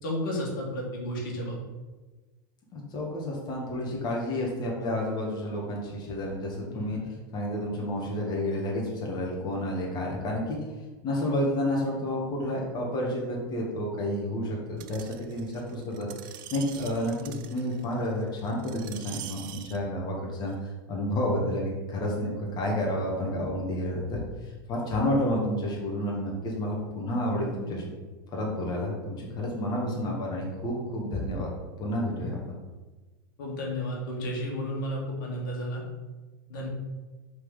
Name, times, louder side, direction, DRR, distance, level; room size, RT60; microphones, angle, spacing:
voice 1, 0.0-1.6 6.7-7.0 33.4-35.8 36.5-36.7, equal, 70° left, -2 dB, 2.0 m, -32 dB
voice 2, 2.7-7.0 7.3-10.6 11.0-27.9 28.3-31.5 31.8-32.4, left 1 dB, 40° left, -2 dB, 1.9 m, -30 dB
Screech, 14.8-19.8 20.5-20.6, right 12 dB, 65° right, 0.5 m, -44 dB
5.4 x 4.1 x 5.6 m, 1.2 s
hypercardioid pair, 105°, 11 cm